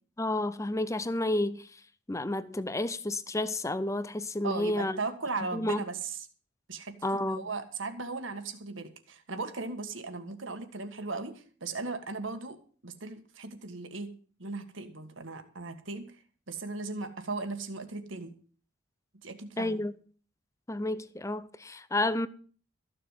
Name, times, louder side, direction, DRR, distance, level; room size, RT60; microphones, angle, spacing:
voice 1, 0.2-1.7 2.1-5.0 5.5-5.8 7.0-7.5 19.6-19.9 20.7-22.3, left 1 dB, 15° left, 0.6 m, -31 dB
voice 2, 4.4-6.2 6.7-12.6 12.8-14.1 14.4-16.1 16.5-18.3 19.2-19.8, right 3 dB, 70° right, 1.8 m, -37 dB
14.0 x 6.9 x 7.5 m
head